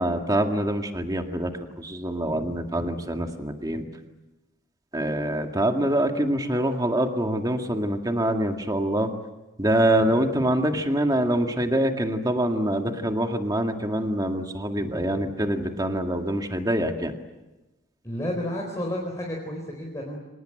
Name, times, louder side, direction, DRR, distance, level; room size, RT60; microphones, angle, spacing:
voice 1, 0.0-3.8 4.9-9.1 9.6-17.1, right 1 dB, 20° right, 4 dB, 2.0 m, -25 dB
voice 2, 18.0-20.2, left 1 dB, 15° left, -1 dB, 4.4 m, -31 dB
26.5 x 20.5 x 9.1 m, 1.0 s
head